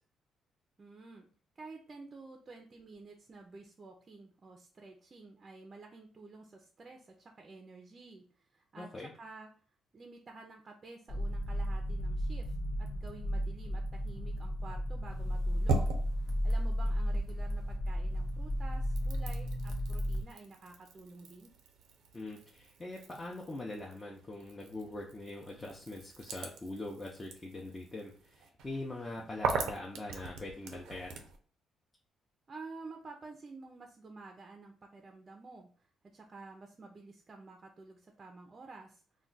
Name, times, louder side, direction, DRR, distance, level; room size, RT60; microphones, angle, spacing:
voice 1, 0.8-1.3 1.6-8.9 9.1-9.5 9.9-21.5 32.5-39.0, right 3 dB, 35° right, 3 dB, 0.4 m, -51 dB
voice 2, 8.8-9.1 22.1-31.2, left 2 dB, 25° left, -2 dB, 0.5 m, -43 dB
sound 1, 11.1-20.2, equal, 65° left, 0.7 m, -34 dB
sound 2, 15.1-17.8 18.1-31.4, right 4 dB, 90° right, 0.5 m, -41 dB
2.3 x 2.2 x 3.8 m, 0.43 s
cardioid pair, 90°, 0 cm